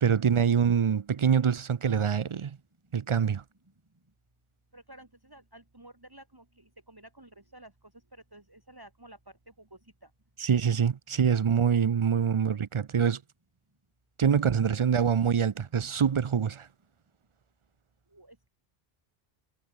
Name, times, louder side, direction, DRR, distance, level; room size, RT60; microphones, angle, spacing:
voice 1, 0.0-2.6 2.9-3.4 10.4-13.2 14.2-16.7, right 7 dB, 45° right, 0.4 m, -25 dB
voice 2, 4.7-7.7 8.1-9.2 9.6-10.1 18.1-18.5, right 1 dB, 20° right, 2.2 m, -52 dB
omnidirectional pair, 1.1 m